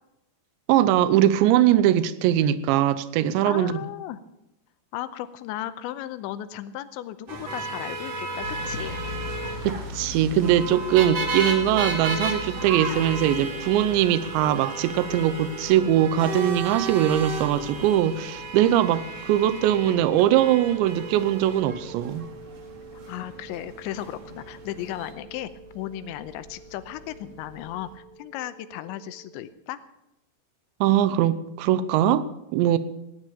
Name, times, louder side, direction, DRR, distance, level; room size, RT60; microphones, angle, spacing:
voice 1, 0.7-3.8 9.6-22.2 30.8-32.8, right 11 dB, 85° right, 3.0 m, -21 dB
voice 2, 3.5-4.2 4.9-9.0 18.7-18.9 23.1-25.5 25.7-29.8, left 12 dB, 90° left, 3.1 m, -35 dB
sound 1, 7.3-25.1, right 3 dB, 50° right, 2.3 m, -34 dB
sound 2, 8.4-28.0, left 1 dB, 65° right, 4.1 m, -42 dB
sound 3, 19.5-29.5, right 4 dB, 25° right, 2.8 m, -46 dB
17.5 x 9.8 x 6.9 m
omnidirectional pair, 5.2 m